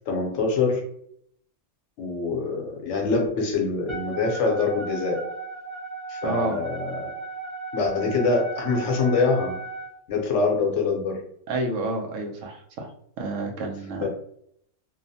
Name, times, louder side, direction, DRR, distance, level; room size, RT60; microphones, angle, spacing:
voice 1, 0.1-0.8 2.0-5.2 6.1-7.1 7.7-9.5 10.1-11.2 14.0-14.1, left 4 dB, 70° left, 1 dB, 1.0 m, -24 dB
Wind instrument woodwind instrument, 3.9-9.9, right 4 dB, 40° left, 0.4 m, -35 dB
voice 2, 6.2-6.6 11.5-12.9 13.2-14.0, right 2 dB, 75° right, 2 dB, 0.9 m, -29 dB
2.9 x 2.0 x 2.7 m, 0.69 s
omnidirectional pair, 1.3 m